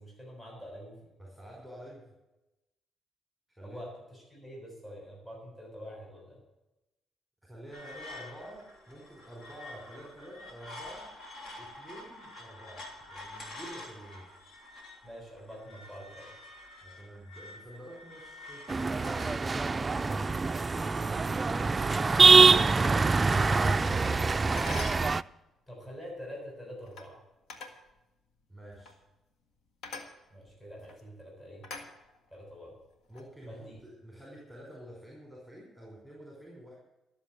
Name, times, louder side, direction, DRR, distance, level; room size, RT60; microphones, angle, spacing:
voice 1, 0.0-1.1 3.6-6.4 15.0-16.3 21.4-21.8 25.7-27.2 30.3-31.6 32.3-32.8 33.4-33.8, equal, 20° left, -3 dB, 6.9 m, -46 dB
voice 2, 1.2-2.1 3.5-3.8 7.5-11.1 11.6-12.8 13.1-14.3 16.8-20.3 28.5-28.9 33.1-36.8, right 1 dB, ahead, -2 dB, 4.6 m, -48 dB
sound 1, 7.7-19.4, left 2 dB, 55° left, 3.2 m, -48 dB
sound 2, 18.7-25.2, right 4 dB, 25° right, 0.4 m, -24 dB
sound 3, 24.1-24.2 24.6-25.1 26.8-27.1 27.5-27.8 28.7-29.0 29.8-30.1 30.8-31.0 31.6-32.4 32.9-33.2, left 4 dB, 80° left, 1.9 m, -43 dB
13.0 x 7.2 x 9.8 m, 0.96 s
cardioid pair, 90°, 0 cm